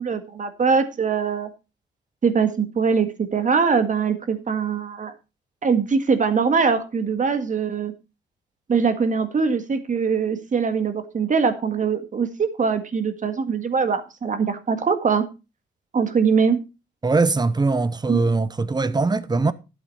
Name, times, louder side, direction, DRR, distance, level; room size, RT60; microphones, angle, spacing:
voice 1, 0.0-1.5 2.2-5.1 5.6-7.9 8.7-15.2 15.9-16.6 18.1-18.2, right 5 dB, 40° right, 1.8 m, -22 dB
voice 2, 17.0-19.5, right 3 dB, 20° right, 0.8 m, -21 dB
11.5 x 8.4 x 4.1 m
cardioid pair, 90°, 20 cm